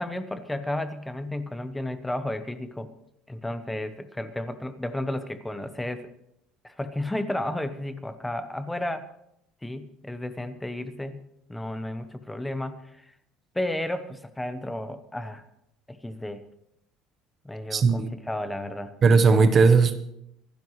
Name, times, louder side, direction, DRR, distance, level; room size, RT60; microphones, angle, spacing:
voice 1, 0.0-2.9 3.3-6.1 6.6-9.1 9.6-11.2 11.5-13.1 13.5-15.5 15.9-16.5 17.4-18.9, left 1 dB, 5° left, 10 dB, 0.8 m, -32 dB
voice 2, 17.7-18.1 19.0-20.0, right 4 dB, 25° right, 10 dB, 0.9 m, -18 dB
24.5 x 12.0 x 3.1 m, 0.77 s
cardioid pair, 175°, 0 cm